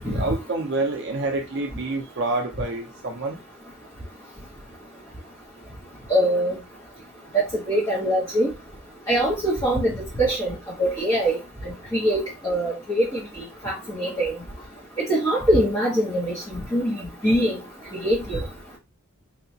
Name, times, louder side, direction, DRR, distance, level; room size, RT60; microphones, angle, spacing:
voice 1, 0.0-3.4, right 2 dB, 55° right, 0.6 m, -27 dB
voice 2, 6.1-6.6 7.3-8.5 9.1-11.4 11.6-13.2 13.6-14.3 15.0-17.6 18.0-18.4, right 1 dB, 15° left, 1.3 m, -23 dB
4.7 x 2.8 x 2.7 m
head